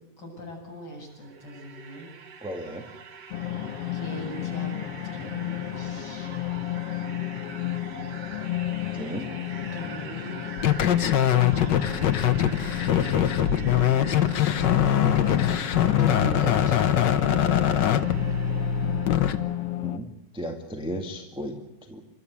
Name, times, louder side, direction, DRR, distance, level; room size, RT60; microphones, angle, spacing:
voice 1, 0.2-2.1 3.9-6.3 9.0-10.5 12.5-14.7 15.2-17.0, right 1 dB, 35° left, -1 dB, 8.7 m, -41 dB
sound 1, 1.0-19.7, right 5 dB, 50° right, 1.4 m, -44 dB
voice 2, 2.4-2.8 8.9-9.3 19.8-20.1 20.3-22.0, equal, ahead, 2 dB, 1.5 m, -35 dB
sound 2, 3.3-20.0, left 13 dB, 65° left, 1.8 m, -33 dB
sound 3, 10.6-19.3, left 10 dB, 80° left, 1.0 m, -22 dB
30.0 x 13.0 x 8.3 m, 0.96 s
omnidirectional pair, 3.4 m